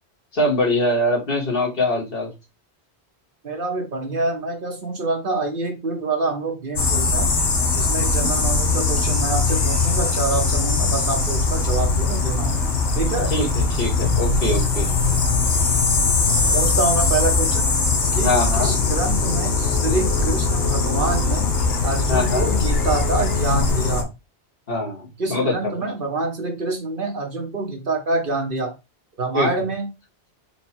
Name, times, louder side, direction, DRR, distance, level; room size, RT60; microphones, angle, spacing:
voice 1, 0.3-2.3 13.3-13.5 13.8-14.9 18.2-18.7 22.1-22.5 24.7-25.5 29.3-29.5, left 1 dB, 55° left, 1.8 m, -22 dB
voice 2, 3.4-7.3 7.8-12.6 12.9-13.3 16.5-17.7 18.1-21.5 21.8-24.1 25.2-28.7 29.2-29.9, right 3 dB, 50° right, 1.1 m, -26 dB
sound 1, 6.8-24.0, left 3 dB, 75° left, 1.3 m, -20 dB
4.6 x 2.3 x 4.3 m
omnidirectional pair, 1.2 m